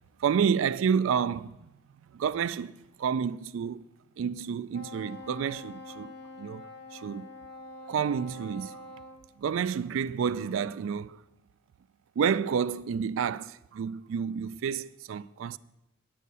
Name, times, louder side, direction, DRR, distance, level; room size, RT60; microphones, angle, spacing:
voice 1, 0.2-1.6 2.1-3.8 4.2-7.3 7.9-8.8 9.4-11.2 12.2-15.6, right 7 dB, 70° right, 0.3 m, -30 dB
Wind instrument woodwind instrument, 4.7-9.2, left 1 dB, 50° left, 1.2 m, -45 dB
9.8 x 8.4 x 5.4 m
head